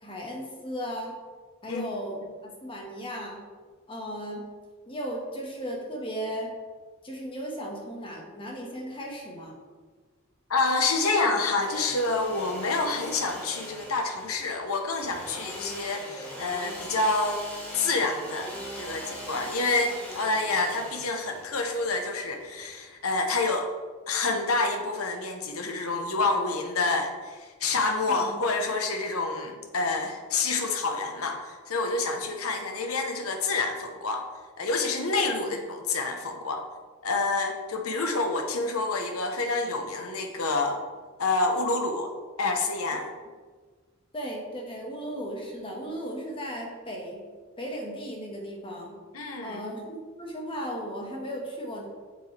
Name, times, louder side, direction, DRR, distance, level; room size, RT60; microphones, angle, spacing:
voice 1, 0.0-1.1 1.6-3.4 3.9-4.4 4.9-6.5 7.0-9.6 28.1-28.3 44.1-47.2 47.6-49.0 49.4-51.9, equal, 25° left, -1 dB, 1.5 m, -36 dB
voice 2, 10.5-17.4 17.7-23.7 24.1-34.2 34.6-36.6 37.0-40.8 41.2-42.1 42.4-43.1 49.1-49.6, left 3 dB, 90° left, 4 dB, 1.0 m, -28 dB
Engine / Sawing, 11.4-23.1, equal, 10° left, 1.6 m, -41 dB
7.5 x 7.2 x 3.3 m, 1.5 s
head